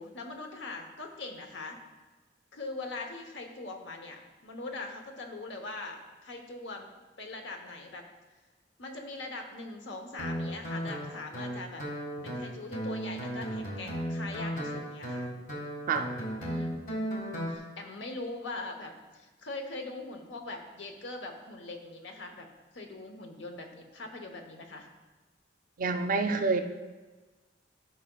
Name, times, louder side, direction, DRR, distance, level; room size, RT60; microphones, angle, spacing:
voice 1, 0.0-1.8 2.5-6.9 7.2-8.0 8.8-11.8 12.2-15.3 16.4-16.8 17.5-22.5 22.7-24.9, left 2 dB, 70° left, 4 dB, 1.0 m, -41 dB
Guitar, 10.2-17.6, equal, 45° left, 1.7 m, -35 dB
voice 2, 25.8-26.6, right 4 dB, 50° right, 7 dB, 0.5 m, -27 dB
12.5 x 5.6 x 2.3 m, 1.3 s
head